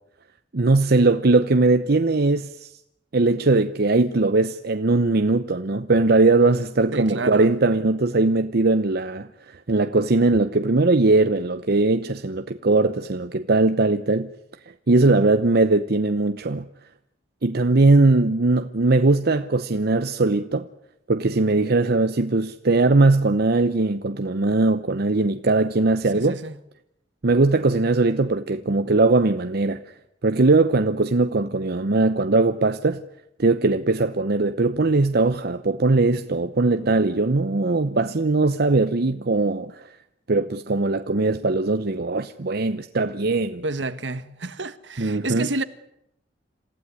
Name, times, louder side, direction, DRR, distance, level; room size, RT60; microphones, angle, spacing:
voice 1, 0.5-2.7 3.1-14.3 14.9-16.7 17.4-20.6 21.1-26.4 27.2-29.8 30.2-33.0 33.4-39.8 40.3-43.6 45.0-45.5, right 3 dB, 60° right, 0.8 m, -20 dB
voice 2, 6.9-7.5 26.1-26.6 43.6-45.6, right 2 dB, 75° right, 1.6 m, -30 dB
27.5 x 15.5 x 9.7 m
head